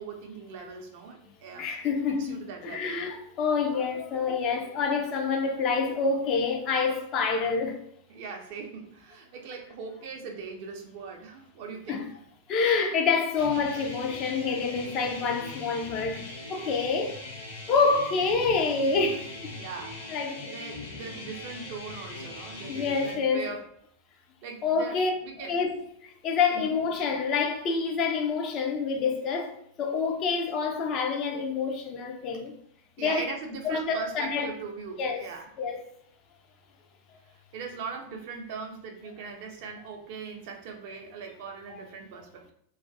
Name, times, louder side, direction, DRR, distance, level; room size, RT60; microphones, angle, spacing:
voice 1, 0.0-3.0 8.1-12.1 19.5-23.6 24.4-25.6 26.5-26.8 33.0-35.5 37.5-42.5, right 5 dB, 50° right, 0.5 m, -40 dB
voice 2, 1.6-7.8 11.9-12.0 12.5-16.2 16.5-17.2 17.7-19.3 20.1-20.5 22.7-23.5 24.6-25.1 25.5-25.8 26.2-32.5 33.0-33.3 33.6-34.5 35.0-35.2 35.6-35.8, left 5 dB, 35° left, 0.4 m, -27 dB
sound 1, 13.4-23.1, left 2 dB, 55° left, 0.8 m, -41 dB
2.3 x 2.2 x 2.5 m
figure-of-eight pair, 90°, 0 cm